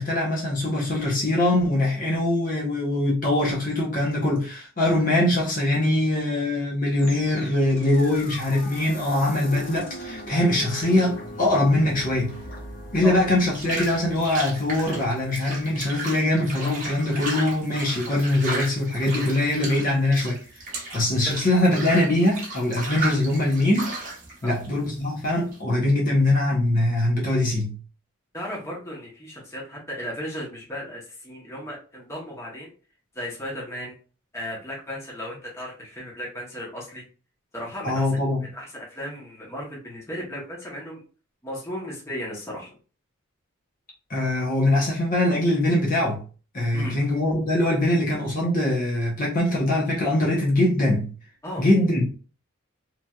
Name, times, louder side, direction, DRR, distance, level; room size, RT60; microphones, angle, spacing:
voice 1, 0.0-12.3 12.9-20.4 20.9-23.9 24.4-27.8 37.8-38.4 44.1-46.2 46.5-51.1 51.6-52.1, left 1 dB, 40° left, 0.8 m, -22 dB
sound 1, 6.9-16.1, left 1 dB, 65° left, 1.4 m, -40 dB
sound 2, 10.8-25.6, right 2 dB, 40° right, 0.9 m, -36 dB
voice 2, 28.3-32.7 33.1-33.9 34.3-37.0 37.5-38.1 38.5-41.0 41.4-42.7 46.7-47.0 51.4-51.7, equal, 15° left, 0.9 m, -35 dB
3.1 x 2.7 x 2.3 m
head